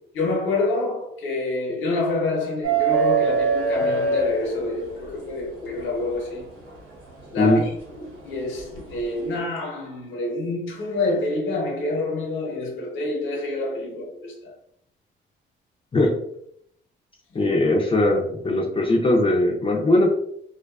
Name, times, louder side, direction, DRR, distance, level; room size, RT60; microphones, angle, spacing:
voice 1, 0.1-6.5 7.3-14.5 17.3-17.6, left 2 dB, 75° left, 0.8 m, -27 dB
sound 1, 2.6-5.0 6.7-6.8 8.6-8.8, right 4 dB, 90° right, 1.0 m, -22 dB
voice 2, 17.3-20.1, left 1 dB, 25° left, 0.5 m, -20 dB
2.4 x 2.3 x 2.3 m
cardioid pair, 90°, 20 cm